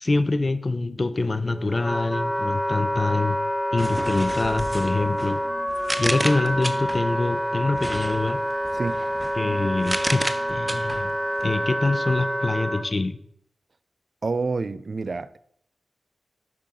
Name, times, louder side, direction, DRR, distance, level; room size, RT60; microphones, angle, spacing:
voice 1, 0.0-3.4 3.7-5.4 6.0-8.4 9.4-11.2 11.4-13.2, left 3 dB, 40° left, 0.5 m, -25 dB
Wind instrument woodwind instrument, 1.2-12.8, equal, 10° left, 1.0 m, -27 dB
sound 1, 3.8-7.2 7.7-11.7, right 1 dB, 10° right, 0.6 m, -33 dB
voice 2, 14.2-15.4, right 4 dB, 55° right, 0.3 m, -28 dB
6.2 x 5.7 x 3.8 m
cardioid pair, 45°, 0 cm